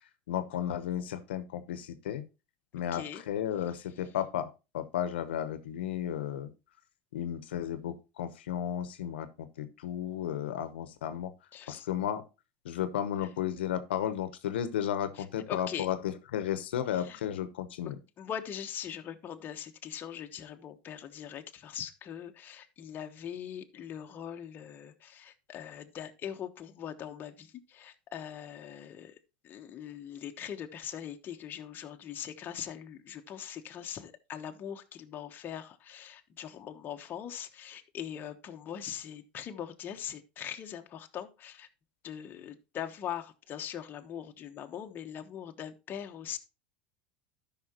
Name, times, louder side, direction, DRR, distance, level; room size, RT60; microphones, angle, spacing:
voice 1, 0.3-2.2 2.7-4.5 4.7-6.5 7.1-11.3 11.7-12.2 12.6-17.9, left 10 dB, 90° left, 0.9 m, -33 dB
voice 2, 2.9-3.2 11.5-11.9 15.2-15.9 16.9-17.2 18.2-29.1 29.4-41.7 42.0-46.4, left 9 dB, 35° left, 1.1 m, -41 dB
13.0 x 5.7 x 2.9 m
supercardioid pair, 110°, 6 cm